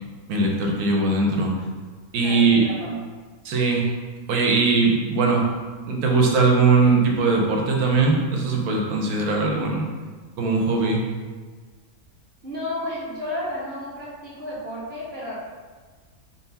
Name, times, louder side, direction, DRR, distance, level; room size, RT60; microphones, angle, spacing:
voice 1, 0.3-1.5 2.1-2.6 3.4-3.8 4.3-5.5 5.9-9.8 10.4-11.0, right 3 dB, 85° right, 0 dB, 1.2 m, -20 dB
voice 2, 2.2-3.0 12.4-15.3, left 1 dB, 35° right, -9 dB, 1.5 m, -32 dB
4.0 x 2.2 x 4.0 m, 1.4 s
omnidirectional pair, 1.6 m